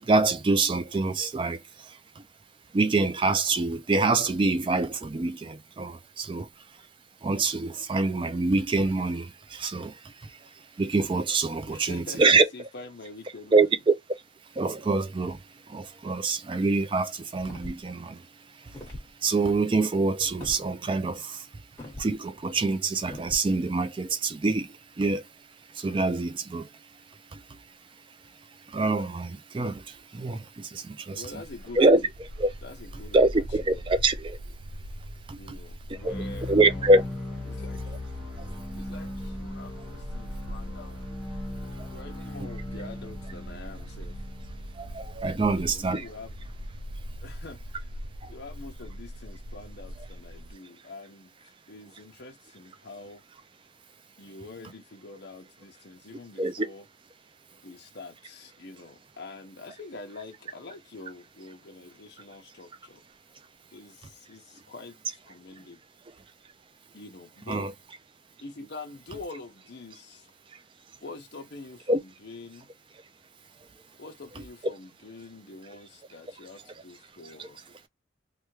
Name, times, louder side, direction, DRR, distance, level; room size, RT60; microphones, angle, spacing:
voice 1, 0.0-2.2 2.7-6.5 7.2-10.5 10.8-12.5 13.5-13.9 14.5-18.3 18.6-18.8 19.2-21.5 22.0-25.3 25.7-26.7 27.3-27.6 28.7-31.2 31.8-32.0 32.4-32.5 33.1-34.4 35.3-35.6 35.9-36.1 36.5-37.0 44.8-46.0 48.2-48.3 56.4-56.7 67.5-67.7 71.9-72.0 77.4-77.5, right 3 dB, 25° right, 0.3 m, -25 dB
voice 2, 11.7-13.8 31.1-32.1 32.6-33.8 35.4-36.9 37.5-37.9 38.8-44.2 45.4-46.3 47.2-47.6 48.2-53.2 54.2-56.8 57.6-63.0 63.7-65.8 66.9-67.7 68.4-70.3 71.0-72.7 74.0-77.6, left 3 dB, 55° left, 0.7 m, -45 dB
sound 1, 17.4-17.9 18.7-19.1 20.4-20.6 21.8-22.1 23.1-23.5, left 1 dB, 15° left, 1.2 m, -40 dB
Bark, 31.4-50.5, equal, 70° right, 0.6 m, -41 dB
sound 2, 35.9-46.0, left 1 dB, 5° right, 0.8 m, -38 dB
3.3 x 2.2 x 3.0 m
head